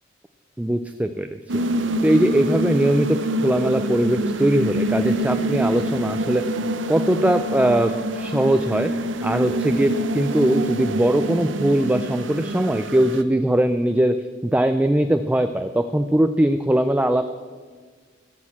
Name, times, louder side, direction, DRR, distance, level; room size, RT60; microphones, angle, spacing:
voice 1, 0.6-1.4 2.0-3.2 3.4-6.6 6.9-8.9 9.2-14.2 14.4-17.2, right 1 dB, 10° right, 8 dB, 0.3 m, -20 dB
sound 1, 1.5-13.2, right 1 dB, 90° right, 0.7 m, -26 dB
14.5 x 6.5 x 7.2 m, 1.5 s
head